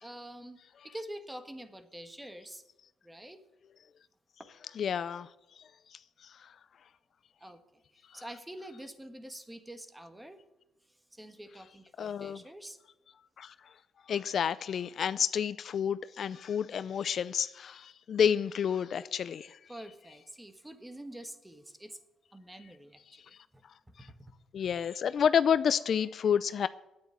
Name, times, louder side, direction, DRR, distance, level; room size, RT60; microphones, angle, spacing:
voice 1, 0.0-0.6 0.8-2.6 3.0-3.4 7.4-7.6 8.1-10.4 11.1-12.8 19.7-22.0 22.3-23.0, right 1 dB, 10° right, 1.5 m, -46 dB
voice 2, 4.8-5.3 12.0-12.4 13.4-13.5 14.1-19.6 24.5-26.7, left 8 dB, 60° left, 0.4 m, -29 dB
9.5 x 8.9 x 9.9 m
cardioid pair, 90°, 0 cm